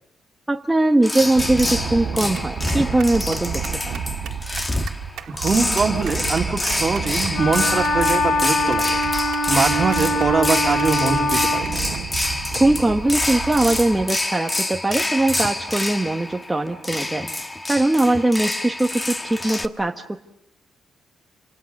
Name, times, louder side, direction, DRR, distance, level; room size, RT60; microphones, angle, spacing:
voice 1, 0.5-4.0 12.5-17.3 17.7-20.2, right 2 dB, 10° right, 2 dB, 1.1 m, -21 dB
sound 1, 1.0-19.7, left 1 dB, 15° left, 1.3 m, -27 dB
sound 2, 1.4-14.0, right 7 dB, 80° right, 2.0 m, -31 dB
voice 2, 5.3-9.0 9.5-11.8, right 4 dB, 35° right, 4 dB, 2.4 m, -23 dB
Wind instrument woodwind instrument, 7.3-11.7, left 2 dB, 65° left, 2.5 m, -23 dB
28.5 x 27.0 x 6.5 m, 0.81 s
cardioid pair, 130°, 0 cm